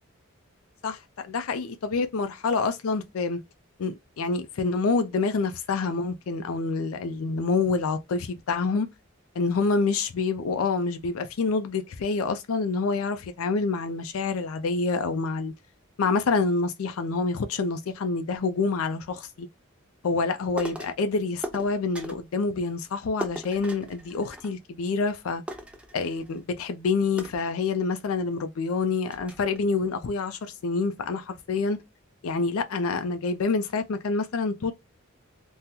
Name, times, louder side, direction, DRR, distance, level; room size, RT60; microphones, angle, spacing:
voice 1, 0.8-3.4 3.8-8.9 9.4-15.5 16.0-19.5 20.0-25.4 25.9-31.8 32.2-34.7, left 4 dB, 90° left, 0.4 m, -27 dB
sound 1, 20.6-21.0 21.4-22.3 23.2-24.8 25.1-25.2 25.5-26.5 27.2-28.1 28.6-28.7 29.1-29.6, right 1 dB, 5° right, 0.3 m, -39 dB
3.6 x 2.1 x 2.8 m
head